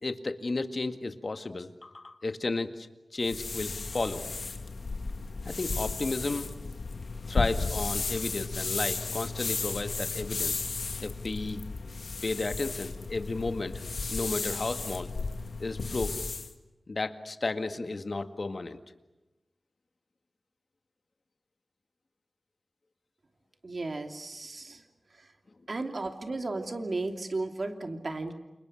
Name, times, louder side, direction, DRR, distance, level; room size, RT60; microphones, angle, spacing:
voice 1, 0.0-2.9 3.1-4.3 5.4-6.5 7.3-10.7 11.0-11.6 12.2-13.8 14.1-15.1 15.6-16.2 16.9-18.8, left 3 dB, 55° left, 8 dB, 1.9 m, -33 dB
sound 1, 3.2-16.5, left 4 dB, 80° left, 1.7 m, -34 dB
voice 2, 23.6-24.8 25.2-25.3 25.7-28.3, right 2 dB, 60° right, 5 dB, 2.9 m, -34 dB
30.0 x 28.0 x 6.5 m, 1.0 s
wide cardioid pair, 65°, 0 cm